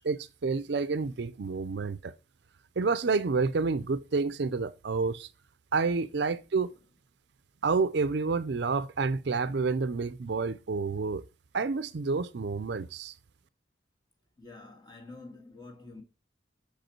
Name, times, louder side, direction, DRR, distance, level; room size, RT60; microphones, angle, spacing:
voice 1, 0.0-2.1 2.8-5.3 5.7-6.7 7.6-11.2 11.5-13.1, right 4 dB, 60° right, 0.5 m, -29 dB
voice 2, 14.4-16.0, left 3 dB, 20° left, 1.7 m, -48 dB
6.7 x 5.3 x 4.4 m
head